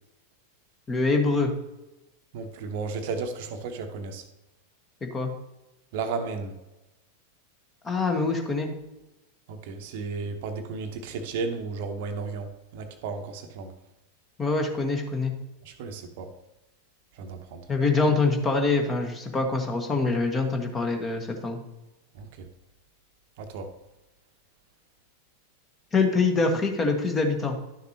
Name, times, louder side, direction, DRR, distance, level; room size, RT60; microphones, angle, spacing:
voice 1, 0.9-1.5 5.1-5.3 7.8-8.7 14.4-15.3 17.7-21.6 25.9-27.6, left 3 dB, 20° left, 4 dB, 1.2 m, -24 dB
voice 2, 2.3-4.2 5.9-6.6 9.5-13.7 15.6-16.3 17.1-17.6 22.1-22.5 23.4-23.7, right 4 dB, 50° right, 7 dB, 0.8 m, -34 dB
11.5 x 6.6 x 2.9 m, 0.99 s
figure-of-eight pair, 90°, 0 cm